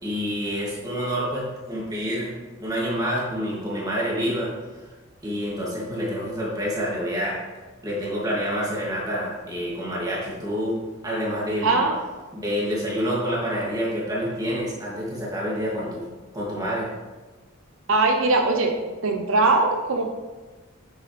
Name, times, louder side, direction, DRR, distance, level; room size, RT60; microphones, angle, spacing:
voice 1, 0.0-2.3 2.6-4.5 5.2-7.4 7.8-10.8 11.0-11.8 12.3-16.1 16.3-16.9, equal, 20° right, -5 dB, 2.8 m, -27 dB
voice 2, 11.6-12.0 17.9-18.7 19.0-20.1, right 3 dB, 80° right, 3 dB, 0.9 m, -20 dB
9.4 x 8.1 x 3.5 m, 1.3 s
head